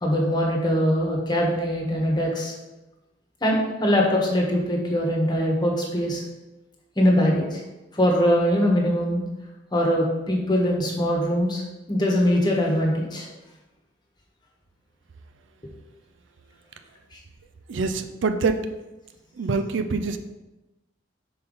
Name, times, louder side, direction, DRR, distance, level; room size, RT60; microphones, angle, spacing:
voice 1, 0.0-2.5 3.4-6.2 7.0-7.6 7.9-9.2 9.7-11.6 11.9-13.3, equal, 25° left, -1 dB, 1.3 m, -22 dB
voice 2, 17.7-18.7 19.4-20.2, right 4 dB, 70° right, 8 dB, 0.4 m, -25 dB
5.7 x 4.2 x 5.4 m, 1.1 s
head